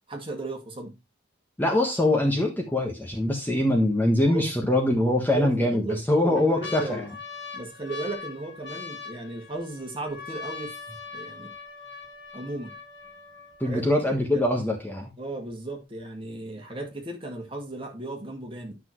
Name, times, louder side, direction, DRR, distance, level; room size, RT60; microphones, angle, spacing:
voice 1, 0.1-1.0 4.3-4.5 5.3-7.1 7.5-10.8 11.1-11.5 12.3-12.8 13.6-14.4 15.2-18.8, right 2 dB, 25° right, 1.9 m, -35 dB
voice 2, 1.6-7.1 13.6-15.1, left 1 dB, 10° left, 1.3 m, -23 dB
sound 1, 6.4-14.1 14.8-14.9 15.0-15.5 16.0-16.1, left 5 dB, 60° left, 1.7 m, -41 dB
10.0 x 6.1 x 3.1 m
head